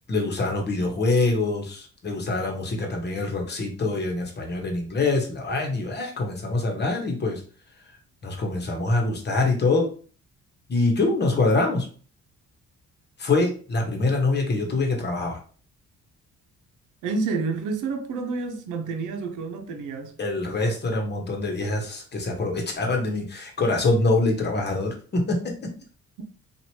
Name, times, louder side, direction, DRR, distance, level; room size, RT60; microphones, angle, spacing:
voice 1, 0.1-7.4 8.2-9.9 10.7-11.9 13.2-15.4 20.2-25.7, left 2 dB, 35° left, 1.1 m, -25 dB
voice 2, 17.0-20.1, right 4 dB, 85° right, 0.7 m, -29 dB
3.0 x 2.5 x 2.9 m
cardioid pair, 90°, 30 cm